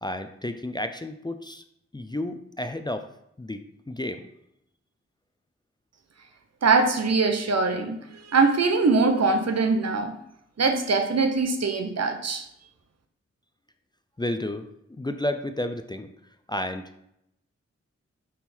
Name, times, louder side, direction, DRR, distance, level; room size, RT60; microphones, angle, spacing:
voice 1, 0.0-1.6 1.9-3.0 3.4-4.3 14.2-16.1 16.5-16.9, left 1 dB, 15° left, 8 dB, 0.5 m, -31 dB
voice 2, 6.6-10.1 10.6-12.4, right 4 dB, 60° right, 6 dB, 0.9 m, -22 dB
6.0 x 3.6 x 4.4 m, 0.77 s
cardioid pair, 50°, 29 cm